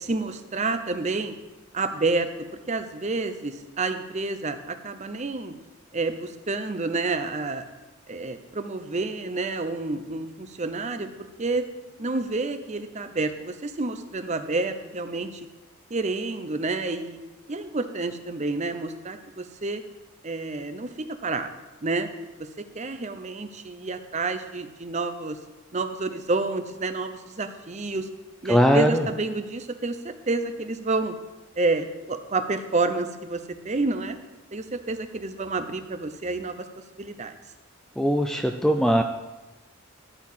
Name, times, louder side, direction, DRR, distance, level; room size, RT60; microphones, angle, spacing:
voice 1, 0.0-1.3 1.7-2.3 2.7-5.6 5.9-7.7 8.1-11.7 12.0-15.5 15.9-17.2 17.5-19.8 20.2-21.5 21.8-22.1 22.7-25.4 25.7-28.1 28.4-31.2 31.6-34.2 34.5-36.6 37.0-37.3, right 3 dB, 35° right, 9 dB, 0.7 m, -29 dB
voice 2, 28.5-29.1 38.0-39.0, equal, ahead, 5 dB, 0.4 m, -20 dB
13.0 x 4.7 x 7.4 m, 1.1 s
head